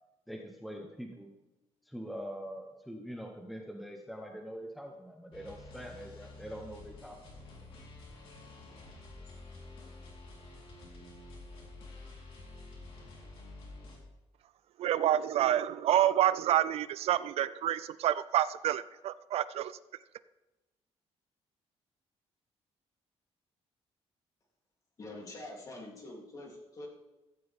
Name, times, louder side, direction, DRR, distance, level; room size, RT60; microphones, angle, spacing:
voice 1, 0.3-1.3 1.9-7.2, equal, ahead, 1 dB, 1.1 m, -43 dB
sound 1, 5.3-14.0, left 2 dB, 55° left, 3.9 m, -49 dB
voice 2, 14.8-19.7, right 11 dB, 65° right, 16 dB, 0.4 m, -28 dB
voice 3, 25.0-26.9, left 2 dB, 30° left, -1 dB, 3.2 m, -45 dB
15.0 x 15.0 x 3.6 m, 1.1 s
cardioid pair, 175°, 11 cm